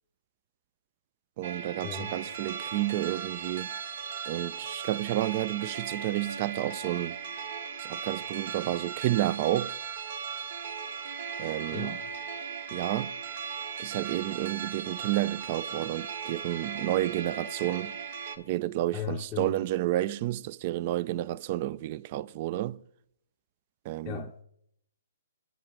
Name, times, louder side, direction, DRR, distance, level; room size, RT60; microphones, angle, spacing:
voice 1, 1.4-3.7 4.3-7.2 7.8-9.8 11.4-12.0 12.7-13.1 13.8-18.0 18.4-22.8 23.9-24.2, right 15 dB, 40° right, 0.3 m, -30 dB
sound 1, 1.4-18.4, right 6 dB, 55° right, 0.8 m, -37 dB
voice 2, 11.7-12.0 18.9-19.5 24.0-24.4, left 8 dB, 15° left, 0.6 m, -37 dB
7.7 x 7.5 x 4.7 m
hypercardioid pair, 140°, 0 cm